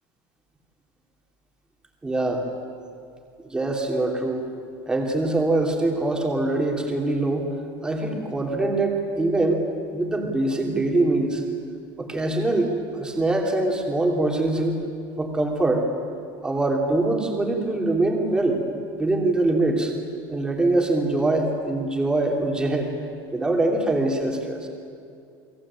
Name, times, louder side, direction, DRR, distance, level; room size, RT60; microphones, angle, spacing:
voice 1, 2.0-2.5 3.5-4.4 4.9-7.4 7.8-9.6 9.9-11.4 12.0-14.8 15.2-15.9 16.4-18.6 19.0-19.9 20.3-22.9 23.3-24.7, right 2 dB, 5° right, 1 dB, 3.0 m, -23 dB
29.5 x 22.0 x 8.8 m, 2.5 s
cardioid pair, 180°, 11 cm